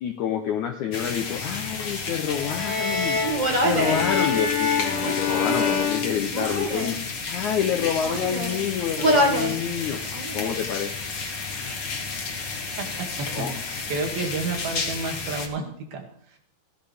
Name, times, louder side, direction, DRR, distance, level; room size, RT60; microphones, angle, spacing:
voice 1, 0.0-3.2 3.6-7.0 7.3-10.0 10.3-10.9 13.3-13.5, left 8 dB, 75° left, 4 dB, 1.8 m, -28 dB
sound 1, 0.9-15.5, left 4 dB, 60° left, 1.1 m, -32 dB
violin-tuning, 2.3-6.9, left 6 dB, 45° left, 3.6 m, -26 dB
Human voice, 3.2-4.0 4.9-5.9 6.3-7.0 7.6-8.6 9.0-9.6 9.9-10.6, right 1 dB, 35° right, 0.6 m, -26 dB
voice 2, 13.2-16.4, right 3 dB, 70° right, 1 dB, 4.1 m, -31 dB
16.0 x 11.0 x 3.5 m, 0.66 s
omnidirectional pair, 4.5 m